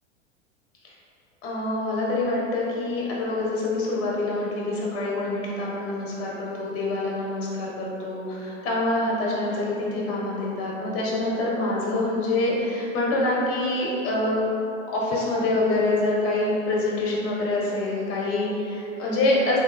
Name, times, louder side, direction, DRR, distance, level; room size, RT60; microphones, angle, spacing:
voice 1, 1.4-14.4 14.9-19.6, left 2 dB, 35° left, -4 dB, 1.1 m, -26 dB
3.1 x 3.0 x 3.4 m, 2.8 s
hypercardioid pair, 95°, 38 cm